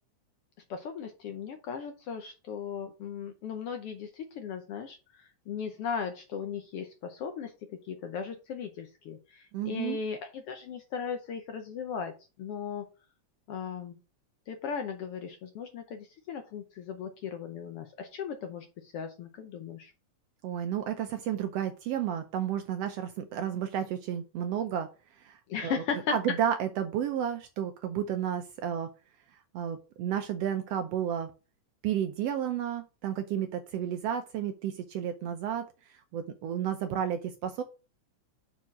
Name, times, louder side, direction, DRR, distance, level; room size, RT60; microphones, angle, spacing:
voice 1, 0.7-12.1 12.4-12.8 13.5-14.0 14.5-19.9 25.5-26.1, left 6 dB, 70° left, 6 dB, 1.4 m, -37 dB
voice 2, 9.5-10.0 20.4-24.9 25.2-25.8 26.1-28.9 29.5-31.3 31.8-35.6 36.1-37.6, right 9 dB, 75° right, 7 dB, 1.5 m, -32 dB
5.6 x 4.5 x 6.1 m, 0.31 s
omnidirectional pair, 3.4 m